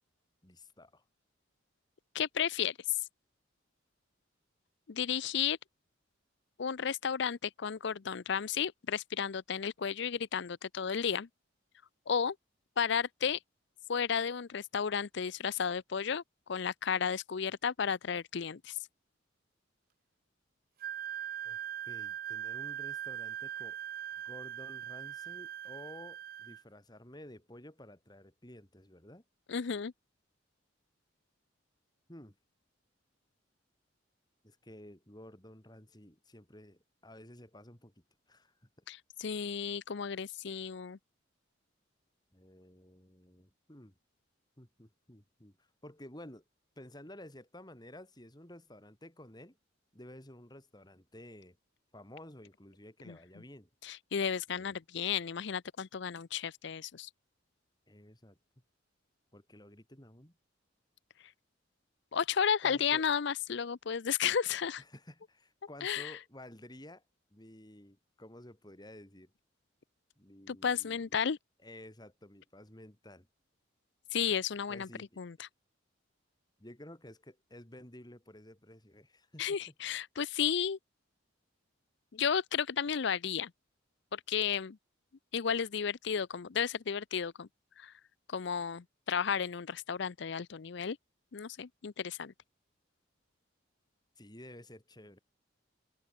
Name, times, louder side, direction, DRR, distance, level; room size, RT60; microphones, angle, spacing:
voice 1, 0.4-1.0 21.5-21.6 21.9-23.8 24.2-29.2 32.1-32.3 34.4-37.9 38.3-38.5 42.3-43.9 44.6-46.4 46.8-49.6 49.9-51.6 51.9-53.7 54.5-54.8 57.9-58.4 59.3-60.3 62.6-63.1 64.8-67.0 67.3-69.3 70.2-71.2 71.6-73.3 74.7-75.2 76.6-79.4 94.2-95.2, left 1 dB, 20° left, 3.8 m, -52 dB
voice 2, 2.1-2.7 4.9-5.6 6.6-11.3 12.1-12.4 12.8-13.4 13.9-16.2 16.5-18.8 29.5-29.9 38.9-41.0 53.1-53.2 53.8-57.1 62.1-64.8 65.8-66.2 70.5-71.4 74.1-74.9 75.2-75.5 79.4-80.8 82.1-83.5 84.1-84.8 85.3-87.5 87.8-87.9 88.3-91.0 91.3-92.3, left 7 dB, 60° left, 0.5 m, -33 dB
Wind instrument woodwind instrument, 20.8-26.6, right 10 dB, 45° right, 0.6 m, -41 dB
head